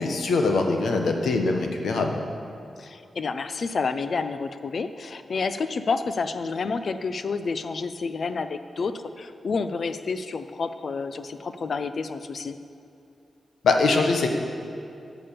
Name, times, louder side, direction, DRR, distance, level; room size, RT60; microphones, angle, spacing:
voice 1, 0.0-2.2 13.6-14.3, left 3 dB, 85° left, 3 dB, 1.2 m, -22 dB
voice 2, 2.8-12.6, left 4 dB, 50° left, 10 dB, 0.5 m, -29 dB
11.0 x 7.0 x 6.9 m, 2.7 s
wide cardioid pair, 155°, 0 cm